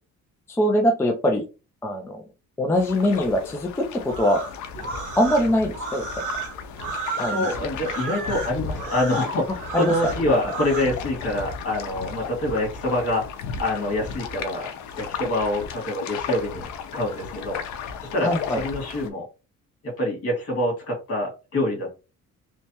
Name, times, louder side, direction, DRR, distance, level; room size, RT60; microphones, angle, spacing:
voice 1, 0.5-1.5 1.8-2.2 2.6-4.4 5.2-6.0 7.2-7.5 9.7-9.9 10.3-10.4 18.2-18.6, equal, 10° left, 1 dB, 0.4 m, -22 dB
sound 1, 2.7-19.1, left 6 dB, 70° left, 0.8 m, -35 dB
sound 2, 4.1-10.9, right 4 dB, 75° right, 1.7 m, -32 dB
voice 2, 6.8-13.3 13.6-14.7 15.0-16.7 16.9-19.3 19.8-21.9, left 1 dB, 50° left, 0 dB, 1.9 m, -26 dB
3.2 x 3.2 x 2.8 m, 0.30 s
cardioid pair, 165°, 30 cm